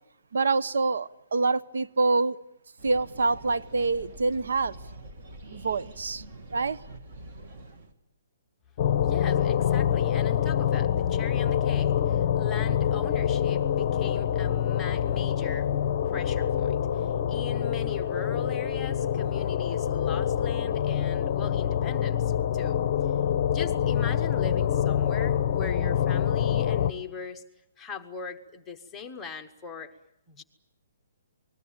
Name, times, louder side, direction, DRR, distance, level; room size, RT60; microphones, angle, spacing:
voice 1, 0.3-2.4 2.8-4.8 5.5-6.2 6.5-6.8, right 3 dB, 85° right, 15 dB, 1.0 m, -26 dB
sound 1, 2.8-7.9, right 1 dB, 30° right, 2.2 m, -45 dB
sound 2, 8.8-26.9, left 9 dB, 25° left, 0.9 m, -26 dB
voice 2, 9.0-15.7 16.0-22.8 23.5-27.4 27.8-29.9 30.3-30.4, left 6 dB, 5° left, 4 dB, 1.0 m, -40 dB
29.0 x 20.5 x 8.9 m, 0.80 s
hypercardioid pair, 180°, 0 cm